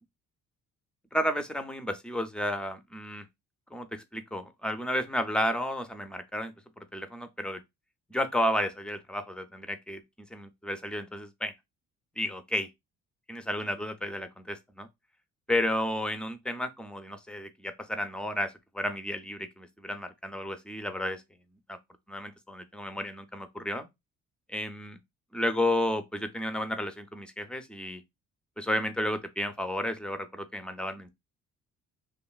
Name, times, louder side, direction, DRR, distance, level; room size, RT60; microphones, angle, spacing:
voice 1, 1.1-3.2 3.7-7.6 8.1-10.0 10.3-11.5 12.2-12.7 13.3-14.9 15.5-21.2 21.7-21.8 22.1-23.9 24.5-25.0 25.3-28.0 28.6-31.1, left 1 dB, 5° left, 0.4 m, -32 dB
2.9 x 2.5 x 2.3 m
cardioid pair, 90°, 30 cm